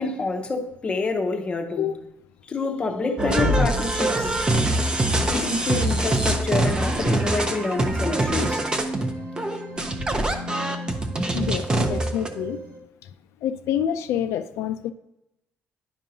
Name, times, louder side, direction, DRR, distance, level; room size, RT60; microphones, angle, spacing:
voice 1, 0.0-1.9 2.5-4.3 5.3-8.6, left 3 dB, 25° left, 0.7 m, -27 dB
sound 1, 3.2-12.3, right 1 dB, 15° right, 0.5 m, -23 dB
sound 2, 4.1-12.8, right 1 dB, 75° right, 1.5 m, -38 dB
voice 2, 11.3-12.6 13.4-14.9, left 10 dB, 90° left, 0.3 m, -27 dB
10.5 x 5.4 x 2.7 m
cardioid pair, 170°, 5 cm